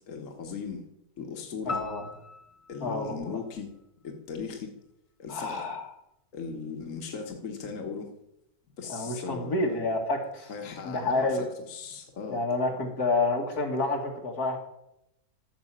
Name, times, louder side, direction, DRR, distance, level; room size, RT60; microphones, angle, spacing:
voice 1, 0.1-0.9 1.2-1.8 2.7-3.7 4.0-4.7 5.2-5.7 6.3-8.1 8.8-9.8 10.5-12.4, left 5 dB, 60° left, 2 dB, 1.7 m, -38 dB
voice 2, 1.6-2.0 2.8-3.3 5.3-5.9 8.9-10.5 10.8-11.5 12.3-14.6, left 2 dB, 85° left, 1 dB, 2.5 m, -29 dB
sound 1, 1.7-4.1, left 3 dB, 30° left, 0.7 m, -40 dB
13.5 x 6.0 x 7.5 m, 0.83 s
omnidirectional pair, 1.6 m